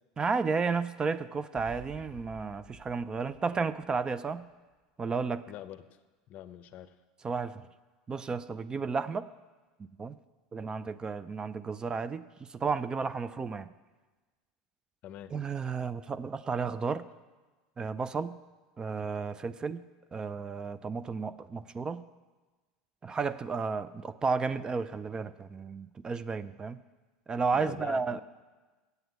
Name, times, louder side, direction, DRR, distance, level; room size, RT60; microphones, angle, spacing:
voice 1, 0.2-4.5 5.0-5.5 7.2-7.7 8.1-9.3 10.0-10.2 10.5-13.7 15.3-17.1 17.8-18.4 18.8-19.8 20.1-22.0 23.0-26.8 27.3-28.2, right 5 dB, 25° right, 14 dB, 0.4 m, -32 dB
sound 1, 1.6-4.5, right 2 dB, 50° right, 3.7 m, -52 dB
voice 2, 5.5-5.9 6.3-7.0 15.0-15.3 27.5-28.2, left 12 dB, 50° left, 12 dB, 0.6 m, -44 dB
8.0 x 7.6 x 8.0 m, 1.3 s
hypercardioid pair, 100°, 4 cm